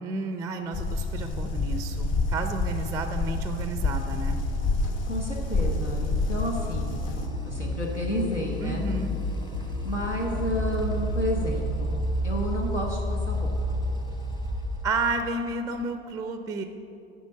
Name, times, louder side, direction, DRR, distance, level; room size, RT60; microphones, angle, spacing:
voice 1, 0.0-4.4 8.6-9.2 14.8-16.6, right 3 dB, 10° right, 7 dB, 0.4 m, -31 dB
sound 1, 0.7-7.3, left 3 dB, 35° left, 0.9 m, -28 dB
sound 2, 1.2-15.5, equal, 15° left, 1.0 m, -33 dB
sound 3, 3.9-11.6, left 1 dB, 70° left, 1.7 m, -38 dB
voice 2, 5.1-8.8 9.8-12.0 12.2-13.5, left 1 dB, 90° left, -1 dB, 1.1 m, -31 dB
9.4 x 5.2 x 7.2 m, 2.8 s
figure-of-eight pair, 80°, 34 cm